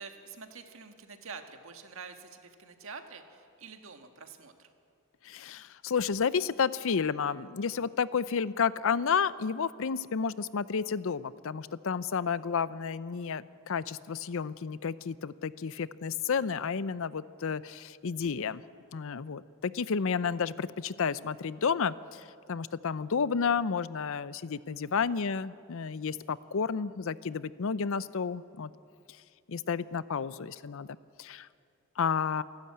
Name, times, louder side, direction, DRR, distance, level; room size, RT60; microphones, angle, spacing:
voice 1, 0.0-4.7 25.0-25.1, right 5 dB, 65° right, 6 dB, 1.7 m, -47 dB
voice 2, 5.2-18.6 18.9-28.7 29.5-30.9 31.2-31.5 32.0-32.4, left 6 dB, 65° left, 17 dB, 0.5 m, -31 dB
27.5 x 12.5 x 8.7 m, 2.4 s
head